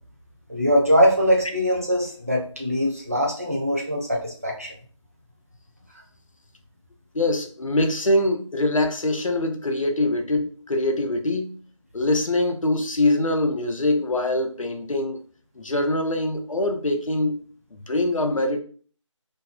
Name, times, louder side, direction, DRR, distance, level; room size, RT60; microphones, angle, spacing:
voice 1, 0.5-4.7, equal, 30° right, 0.5 m, -22 dB
voice 2, 7.1-11.6 11.9-15.2 15.6-17.4 17.7-18.6, left 1 dB, 80° left, 0.6 m, -23 dB
2.6 x 2.3 x 2.3 m
figure-of-eight pair, 170°, 17 cm